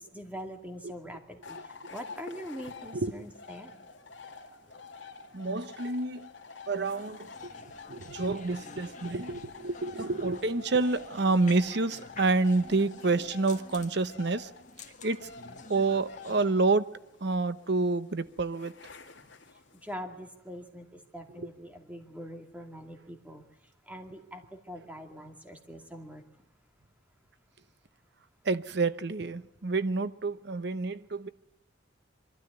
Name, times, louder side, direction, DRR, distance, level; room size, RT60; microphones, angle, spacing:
voice 1, 0.1-3.9 19.8-23.4 23.9-26.2, equal, 10° right, 2.4 m, -43 dB
sound 1, 1.4-19.9, left 4 dB, 85° left, 2.2 m, -48 dB
voice 2, 5.3-6.3 6.7-7.5 7.9-14.5 15.0-15.3 15.7-18.9 21.3-21.5 28.4-31.3, right 3 dB, 60° right, 0.9 m, -28 dB
sound 2, 6.8-16.5, left 4 dB, 40° left, 1.6 m, -50 dB
24.0 x 13.0 x 9.7 m
head